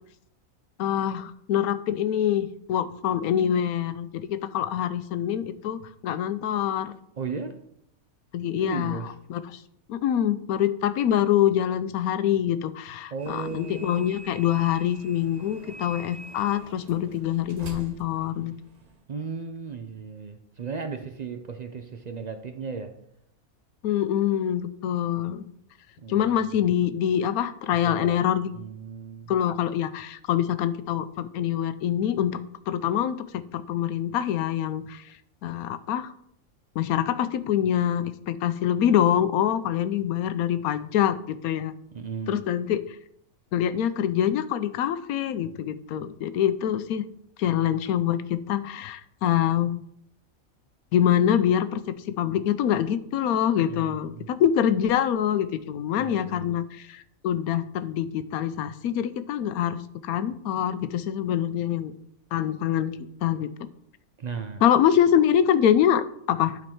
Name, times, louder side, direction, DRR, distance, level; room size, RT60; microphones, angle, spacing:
voice 1, 0.8-7.0 8.3-9.0 9.3-9.6 9.9-18.5 23.8-25.4 26.1-28.5 29.3-32.4 32.7-35.1 35.4-36.1 36.8-41.7 42.3-43.0 43.5-47.0 47.4-49.8 50.9-59.8 60.0-61.9 62.3-63.5 64.6-66.6, left 10 dB, 85° left, 13 dB, 1.1 m, -25 dB
voice 2, 7.2-7.6 8.6-9.1 13.1-14.0 19.1-23.0 24.8-25.0 26.0-26.4 27.8-28.2 28.5-29.4 41.9-42.5 53.6-54.3 56.0-56.6 64.2-64.6, right 5 dB, 75° right, 7 dB, 0.4 m, -36 dB
sound 1, 13.2-19.0, right 3 dB, 40° right, 0.6 m, -45 dB
11.5 x 4.0 x 4.4 m, 0.72 s
omnidirectional pair, 1.5 m